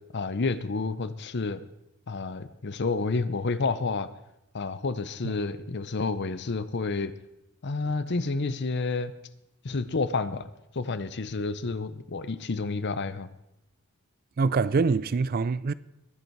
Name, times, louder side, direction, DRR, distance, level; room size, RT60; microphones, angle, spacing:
voice 1, 0.1-1.6 2.1-4.1 4.5-7.1 7.6-9.1 9.6-10.5 10.7-13.3, left 3 dB, 50° left, 0.7 m, -29 dB
voice 2, 14.4-15.7, right 4 dB, 40° right, 0.4 m, -25 dB
21.5 x 8.2 x 4.6 m
head